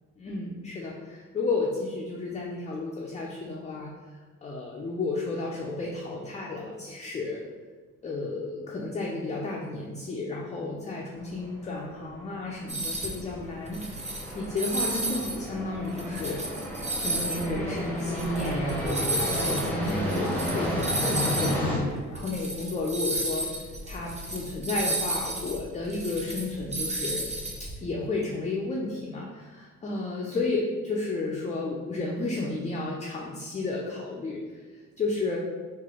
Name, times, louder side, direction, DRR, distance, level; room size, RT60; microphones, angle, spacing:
voice 1, 0.2-3.9 4.4-7.4 8.0-14.0 14.3-16.4 17.0-23.5 23.8-27.2 27.6-34.4 35.0-35.4, left 3 dB, 25° left, -3 dB, 0.4 m, -32 dB
sound 1, 11.2-21.8, equal, 5° left, 0.8 m, -32 dB
sound 2, 12.7-13.2 13.6-15.3 15.8-21.5 21.9-22.0 22.2-27.7, right 2 dB, 25° right, 0.7 m, -32 dB
3.2 x 2.4 x 3.7 m, 1.4 s
cardioid pair, 90°, 30 cm